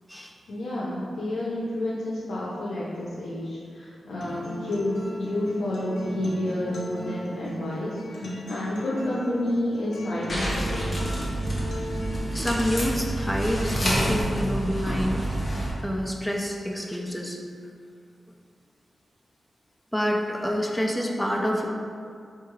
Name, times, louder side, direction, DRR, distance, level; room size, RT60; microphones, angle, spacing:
voice 1, 0.5-11.2, left 1 dB, 85° left, -7 dB, 0.5 m, -30 dB
Acoustic guitar, 4.2-12.2, equal, 70° left, 0.9 m, -36 dB
sound 1, 10.3-15.7, right 1 dB, 30° left, 0.7 m, -28 dB
voice 2, 12.3-15.3 15.8-17.4 19.9-21.7, equal, ahead, 0 dB, 0.3 m, -27 dB
4.5 x 2.3 x 3.0 m, 2.3 s
wide cardioid pair, 150°, 0 cm